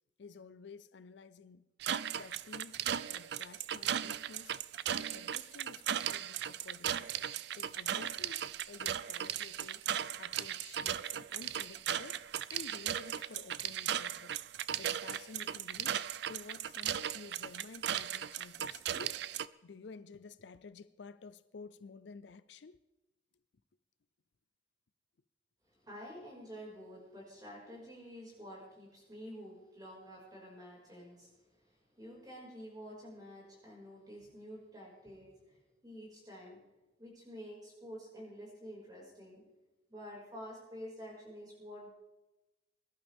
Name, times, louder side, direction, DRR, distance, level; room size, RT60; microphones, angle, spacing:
voice 1, 0.2-1.6 2.1-7.1 7.6-9.9 10.2-12.2 12.5-14.4 14.8-16.0 16.3-19.2 19.6-22.8, left 4 dB, 70° left, 0.5 m, -52 dB
sound 1, 1.8-19.5, right 10 dB, 60° right, 0.4 m, -37 dB
voice 2, 25.7-36.6 37.0-39.4 39.9-41.9, equal, 20° right, 5.4 m, -49 dB
22.0 x 11.5 x 3.6 m
head